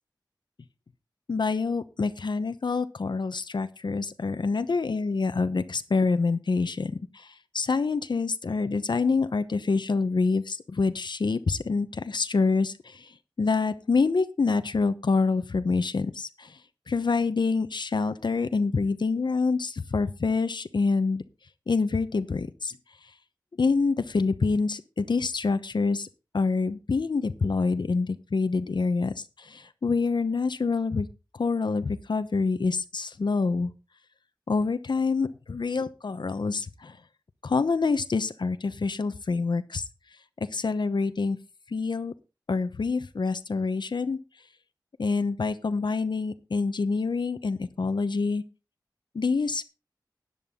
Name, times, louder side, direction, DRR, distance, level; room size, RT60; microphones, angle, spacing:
voice 1, 1.3-13.1 13.4-16.6 16.9-21.2 21.7-22.8 23.6-26.1 26.3-31.1 31.3-33.7 34.5-37.0 37.4-39.8 40.5-41.4 41.7-42.1 42.5-44.2 45.0-48.4 49.1-49.6, left 4 dB, 80° left, 10 dB, 0.9 m, -26 dB
12.5 x 10.0 x 3.7 m, 0.30 s
wide cardioid pair, 55°, 8 cm